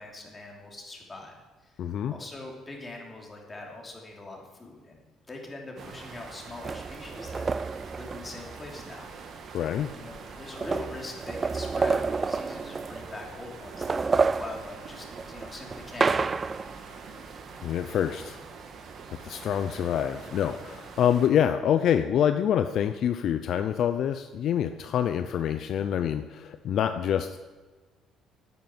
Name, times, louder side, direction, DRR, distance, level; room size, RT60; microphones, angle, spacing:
voice 1, 0.0-1.4 1.6-1.7 2.1-9.1 9.9-16.5, left 2 dB, 20° left, 0 dB, 3.1 m, -42 dB
voice 2, 1.8-2.1 9.5-9.9 17.6-18.4 19.2-27.4, left 9 dB, 60° left, 9 dB, 0.6 m, -26 dB
sound 1, 5.8-21.3, right 5 dB, 55° right, 1.6 m, -45 dB
sound 2, 6.6-8.8 9.8-9.9 10.2-13.3 13.6-16.8, right 4 dB, 30° right, 0.3 m, -29 dB
10.5 x 9.4 x 7.9 m, 1.3 s
cardioid pair, 105°, 0 cm